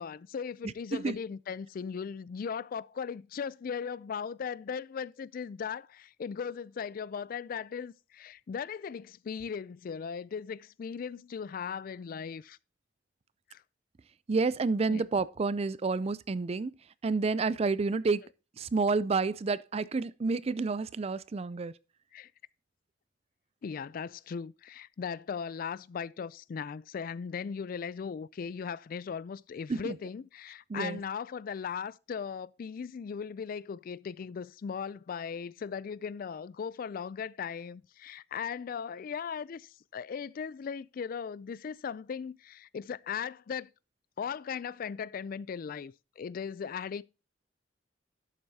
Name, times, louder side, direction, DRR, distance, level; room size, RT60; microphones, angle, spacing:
voice 1, 0.0-12.6 13.5-13.6 14.9-15.1 18.2-18.3 22.1-22.3 23.6-43.7 44.2-47.0, left 6 dB, 50° left, 0.3 m, -38 dB
voice 2, 14.3-16.7 17.0-18.2 18.6-21.7 29.7-30.0 30.7-31.0, right 4 dB, 35° right, 0.4 m, -29 dB
11.5 x 7.9 x 2.8 m
head